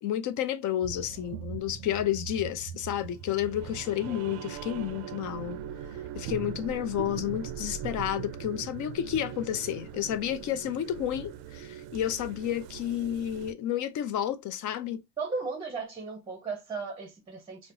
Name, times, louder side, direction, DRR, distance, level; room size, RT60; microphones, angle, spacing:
voice 1, 0.0-5.6 6.1-15.0, left 11 dB, 40° left, 0.5 m, -31 dB
sound 1, 0.8-13.5, right 9 dB, 55° right, 0.5 m, -40 dB
voice 2, 15.2-17.7, right 4 dB, 10° right, 0.7 m, -36 dB
4.3 x 2.0 x 2.6 m
supercardioid pair, 125°, 48 cm